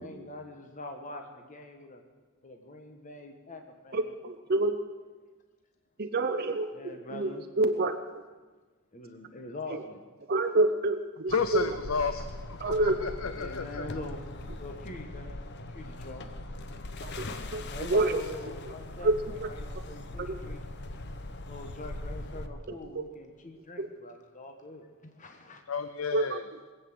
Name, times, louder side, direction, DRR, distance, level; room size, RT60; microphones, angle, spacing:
voice 1, 0.0-2.0 2.4-4.1 6.7-7.4 8.9-10.0 13.3-14.2 14.6-15.3 15.7-16.2 17.7-20.6 21.4-25.6, left 2 dB, 35° left, 4 dB, 1.3 m, -43 dB
voice 2, 3.9-4.8 6.0-8.2 9.7-9.8 10.3-11.8 12.6-13.1 17.0-17.3 17.5-17.6 17.9-18.7 19.0-19.5 20.2-20.3 22.9-23.1 23.8-23.9 26.1-26.4, right 2 dB, 45° right, 7 dB, 0.7 m, -28 dB
voice 3, 11.3-13.9 25.7-26.4, left 5 dB, 70° left, 10 dB, 0.7 m, -32 dB
sound 1, 11.3-22.5, left 2 dB, 55° left, 0.9 m, -40 dB
20.5 x 8.2 x 7.8 m, 1.3 s
head